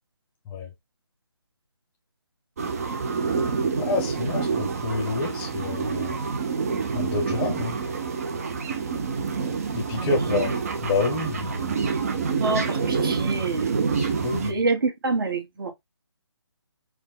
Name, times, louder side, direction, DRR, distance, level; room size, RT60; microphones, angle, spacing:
sound 1, 2.6-14.5, right 5 dB, 35° right, 0.6 m, -27 dB
voice 1, 3.8-6.2 6.9-7.8 9.7-10.5 10.8-11.7 14.0-14.5, left 4 dB, 10° left, 0.8 m, -28 dB
voice 2, 9.9-10.2 12.4-13.7 14.3-15.7, right 3 dB, 55° right, 1.4 m, -27 dB
4.5 x 2.2 x 3.6 m
hypercardioid pair, 165°, 14 cm